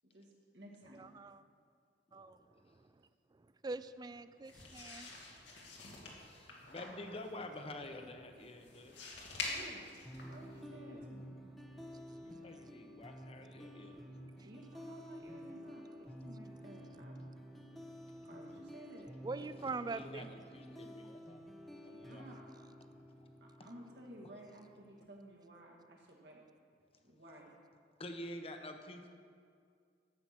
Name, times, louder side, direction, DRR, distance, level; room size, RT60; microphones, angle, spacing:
voice 1, 0.1-1.0 9.4-9.9 10.2-11.4 14.4-17.2 18.3-19.1 22.0-22.7 23.4-26.4 27.0-27.5, right 1 dB, 70° right, -1 dB, 2.2 m, -54 dB
voice 2, 0.9-1.4 2.1-5.1 8.7-9.1 11.9-12.7 13.6-14.5 17.6-18.3 19.2-20.3, right 3 dB, 25° right, 14 dB, 0.3 m, -46 dB
sound 1, 4.4-10.6, left 3 dB, 85° left, 2.3 m, -47 dB
voice 3, 6.2-9.0 12.2-13.9 19.9-21.4 21.8-22.2 28.0-29.1, left 1 dB, 35° left, 5 dB, 1.0 m, -48 dB
sound 2, 10.0-25.1, equal, ahead, 0.9 m, -51 dB
12.5 x 7.8 x 6.0 m, 2.2 s
head